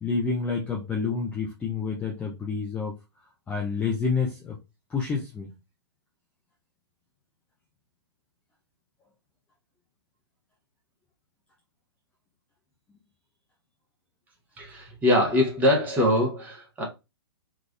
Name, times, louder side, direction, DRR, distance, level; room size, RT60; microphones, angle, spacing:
voice 1, 0.0-3.0 3.5-4.6 4.9-5.5, left 5 dB, 10° left, 0.4 m, -28 dB
voice 2, 14.6-16.8, left 1 dB, 10° right, 0.9 m, -23 dB
3.3 x 2.4 x 2.3 m
figure-of-eight pair, 120°, 14 cm